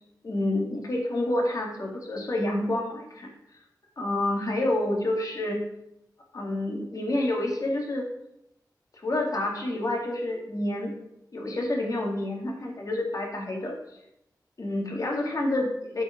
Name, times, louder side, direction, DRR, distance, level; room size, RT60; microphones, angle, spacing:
voice 1, 0.2-3.3 4.0-5.6 6.3-8.0 9.0-10.9 11.3-13.7 14.6-16.0, left 1 dB, 50° left, -1 dB, 2.1 m, -28 dB
7.6 x 4.7 x 6.2 m, 0.79 s
wide cardioid pair, 90°, 7 cm